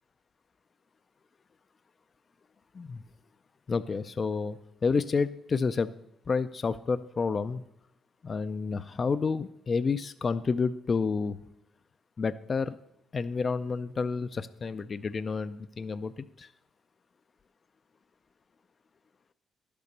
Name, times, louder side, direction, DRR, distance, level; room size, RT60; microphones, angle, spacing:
voice 1, 3.7-5.9 6.3-7.6 8.2-11.4 12.2-12.8 13.1-16.5, left 4 dB, 40° left, 12 dB, 0.4 m, -30 dB
11.5 x 6.8 x 6.5 m, 0.84 s
cardioid pair, 90°, 0 cm